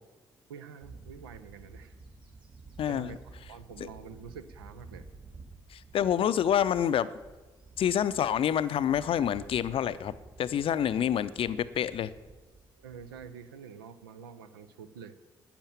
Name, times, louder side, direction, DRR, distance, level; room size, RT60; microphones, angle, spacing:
voice 1, 0.5-1.9 2.9-5.1 12.8-15.1, right 7 dB, 75° right, 11 dB, 0.6 m, -47 dB
Bird / Wind, 0.8-13.6, right 3 dB, 40° right, 3.1 m, -52 dB
voice 2, 2.8-3.2 5.7-7.1 7.8-10.1 10.4-12.1, left 9 dB, 45° left, 16 dB, 0.5 m, -27 dB
12.0 x 8.7 x 7.2 m, 1.2 s
figure-of-eight pair, 40°, 12 cm